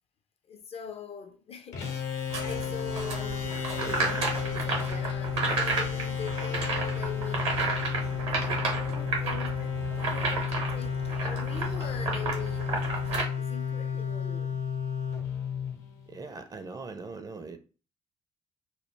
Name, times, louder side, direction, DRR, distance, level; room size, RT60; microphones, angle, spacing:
voice 1, 0.5-1.9 2.4-7.5 8.1-14.6, left 7 dB, 40° left, 0.4 m, -43 dB
sound 1, 1.7-16.3, left 7 dB, 65° left, 0.7 m, -32 dB
sound 2, 2.3-13.2, right 4 dB, 75° right, 0.8 m, -32 dB
voice 2, 3.8-4.3 16.1-17.6, right 4 dB, 25° right, 0.4 m, -41 dB
2.1 x 2.1 x 3.1 m
figure-of-eight pair, 45°, 15 cm